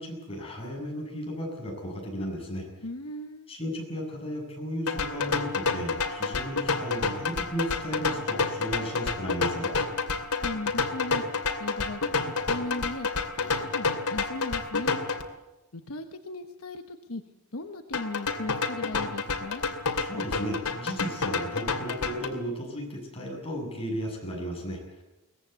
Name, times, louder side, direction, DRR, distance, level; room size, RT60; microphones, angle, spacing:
voice 1, 0.0-2.6 3.5-9.7 20.0-25.0, equal, 25° left, 0 dB, 7.7 m, -35 dB
voice 2, 2.8-3.5 10.4-13.1 13.4-15.0 15.7-17.2 17.5-19.6, left 2 dB, 70° left, 7 dB, 1.2 m, -37 dB
sound 1, 4.9-15.2 17.9-22.3, left 4 dB, 90° left, 2.6 m, -29 dB
23.0 x 19.5 x 8.3 m, 1.0 s
head